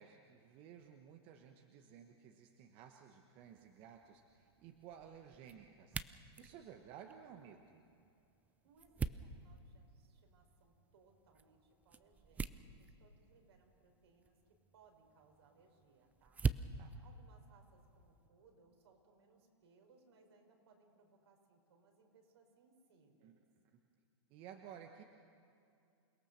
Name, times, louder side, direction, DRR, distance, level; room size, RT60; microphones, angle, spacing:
voice 1, 0.0-6.0 6.4-7.8 16.7-17.0 23.2-23.8 24.3-25.0, right 8 dB, 40° right, 4 dB, 1.3 m, -56 dB
sound 1, 3.4-18.3, right 5 dB, 10° right, 0.4 m, -46 dB
voice 2, 8.6-12.5 12.8-14.4 14.7-16.5 17.0-23.4, right 4 dB, 70° right, 2 dB, 4.7 m, -68 dB
28.5 x 17.5 x 6.7 m, 2.5 s
hypercardioid pair, 130°, 14 cm